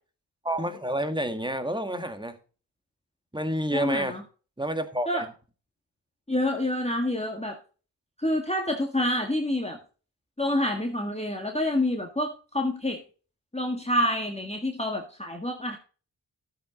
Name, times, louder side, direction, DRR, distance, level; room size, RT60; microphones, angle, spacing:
voice 1, 0.4-2.4 3.3-4.2 4.6-5.3, right 1 dB, 10° right, 9 dB, 1.8 m, -29 dB
voice 2, 3.7-4.2 5.1-5.3 6.3-7.6 8.2-9.8 10.4-13.0 13.5-15.8, left 1 dB, 15° left, 2 dB, 1.8 m, -27 dB
13.5 x 7.7 x 4.0 m, 0.37 s
cardioid pair, 50°, 45 cm